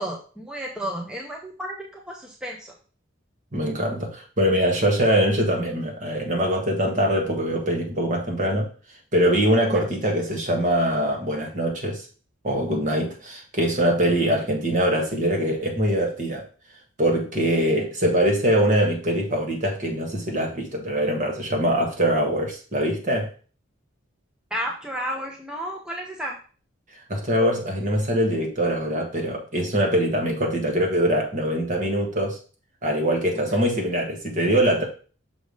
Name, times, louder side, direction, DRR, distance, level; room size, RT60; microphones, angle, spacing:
voice 1, 0.0-2.7 9.7-9.8 24.5-26.3 33.4-33.6, equal, 5° right, -1 dB, 0.8 m, -32 dB
voice 2, 3.5-8.7 9.1-12.0 12.4-16.4 17.0-23.3 27.1-32.4 32.8-34.8, equal, 40° right, 1 dB, 1.6 m, -23 dB
6.2 x 3.4 x 5.2 m, 0.38 s
head